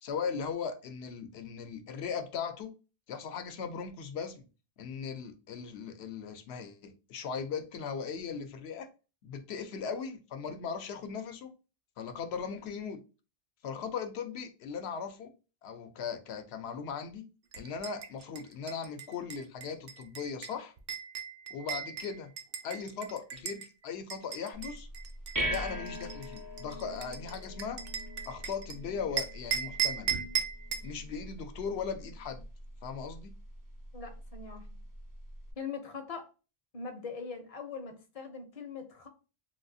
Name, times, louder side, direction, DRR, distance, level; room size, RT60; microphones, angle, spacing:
voice 1, 0.0-2.7 3.1-4.5 4.8-8.9 9.2-11.5 12.0-13.0 13.6-15.3 15.6-17.3 17.5-20.7 21.5-22.3 22.6-24.9 25.4-27.8 28.3-30.1 30.8-32.4 32.8-33.3, left 6 dB, 80° left, 0.8 m, -38 dB
sound 1, 17.5-23.7 24.1-28.8 29.2-30.9, right 8 dB, 65° right, 0.7 m, -37 dB
sound 2, 24.5-35.5, equal, 35° right, 0.3 m, -42 dB
voice 2, 33.9-34.7 35.6-36.3 36.7-39.1, left 5 dB, 40° left, 0.6 m, -41 dB
3.5 x 2.4 x 2.6 m
omnidirectional pair, 1.1 m